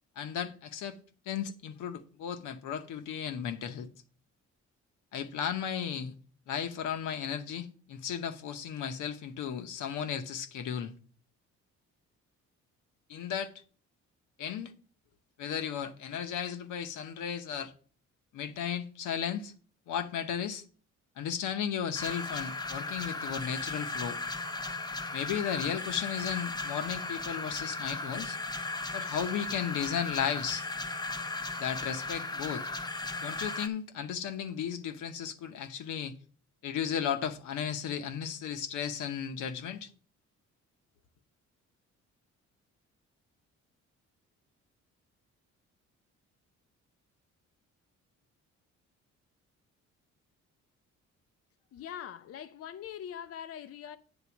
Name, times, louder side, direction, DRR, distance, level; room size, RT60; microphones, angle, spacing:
voice 1, 0.2-1.0 1.3-3.9 5.1-6.1 6.5-10.9 13.1-13.5 14.4-14.7 15.4-17.7 18.3-19.5 19.9-20.6 21.2-24.2 25.1-28.4 28.9-30.6 31.6-32.7 33.2-36.1 36.6-39.9, left 8 dB, 80° left, 0.9 m, -35 dB
sound 1, 21.9-33.7, left 3 dB, 15° left, 0.7 m, -36 dB
voice 2, 51.7-54.0, left 9 dB, 55° left, 0.5 m, -42 dB
8.8 x 4.0 x 7.1 m
cardioid pair, 90°, 30 cm